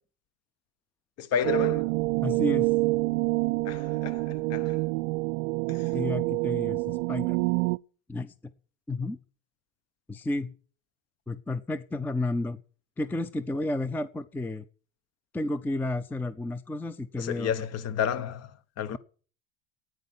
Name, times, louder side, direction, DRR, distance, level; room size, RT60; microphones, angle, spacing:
voice 1, 1.2-1.9 3.7-4.8 5.7-5.9 17.2-18.5 18.8-19.0, left 8 dB, 40° left, 1.2 m, -31 dB
sound 1, 1.4-7.8, right 25 dB, 70° right, 0.6 m, -27 dB
voice 2, 2.2-2.7 5.9-7.5 8.1-8.3 8.9-9.2 10.1-10.5 11.3-12.6 13.0-14.6 15.3-17.5, left 2 dB, 5° left, 0.5 m, -31 dB
12.0 x 9.4 x 7.4 m
supercardioid pair, 115°, 37 cm